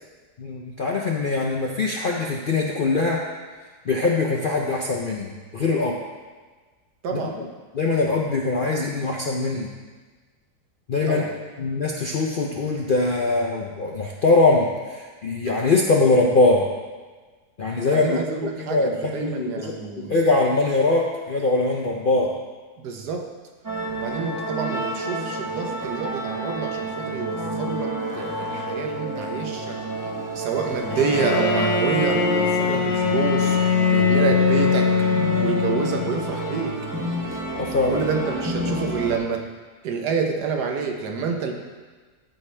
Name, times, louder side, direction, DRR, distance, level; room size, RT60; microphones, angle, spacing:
voice 1, 0.4-3.3 3.9-6.0 7.1-7.5 7.7-9.7 10.9-11.2 11.6-16.7 17.6-22.4 37.6-38.0, left 3 dB, 60° left, -1 dB, 0.5 m, -22 dB
voice 2, 7.0-7.4 11.1-11.3 17.9-20.1 22.8-23.3 24.0-29.8 30.3-33.6 33.9-34.9 35.4-36.8 37.9-39.5 39.8-41.5, right 5 dB, 80° right, 3 dB, 1.5 m, -28 dB
sound 1, 23.6-39.2, right 1 dB, 20° right, 0.6 m, -30 dB
Bowed string instrument, 30.9-36.3, left 5 dB, 80° left, 1.3 m, -21 dB
13.5 x 4.8 x 3.3 m, 1.4 s
omnidirectional pair, 1.7 m